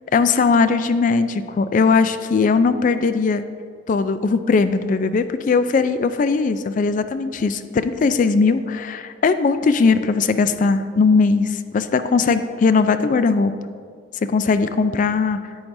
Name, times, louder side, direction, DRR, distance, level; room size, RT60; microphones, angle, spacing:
voice 1, 0.1-3.4 3.9-13.5 14.3-15.4, left 4 dB, 45° left, 11 dB, 0.3 m, -19 dB
10.5 x 8.7 x 2.6 m, 2.1 s
head